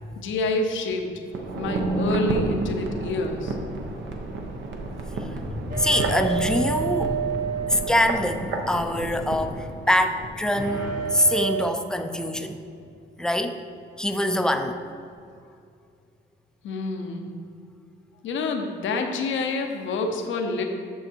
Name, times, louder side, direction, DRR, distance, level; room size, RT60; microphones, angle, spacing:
voice 1, 0.2-1.1 1.6-3.6 16.6-17.3 18.2-20.6, left 3 dB, 75° left, 3 dB, 0.8 m, -27 dB
sound 1, 1.3-10.3 10.6-10.7, right 2 dB, 65° right, 1.0 m, -31 dB
voice 2, 5.2-7.4 7.7-12.6 13.2-13.6 14.0-14.8, left 1 dB, 5° left, 7 dB, 0.5 m, -24 dB
sound 2, 5.7-8.7 10.6-11.6, right 6 dB, 45° right, 1.7 m, -29 dB
6.4 x 6.4 x 4.6 m, 2.4 s
cardioid pair, 90°, 20 cm